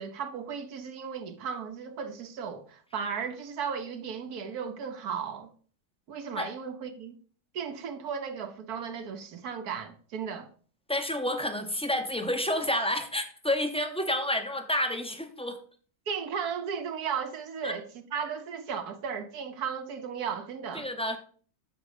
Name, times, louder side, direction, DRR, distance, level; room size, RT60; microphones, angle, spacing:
voice 1, 0.0-5.5 6.1-7.1 7.5-10.5 16.1-20.9, right 6 dB, 80° right, 1.4 m, -35 dB
voice 2, 10.9-15.6 17.6-17.7 20.7-21.2, left 1 dB, 5° left, 0.5 m, -29 dB
7.3 x 5.8 x 4.9 m
omnidirectional pair, 1.6 m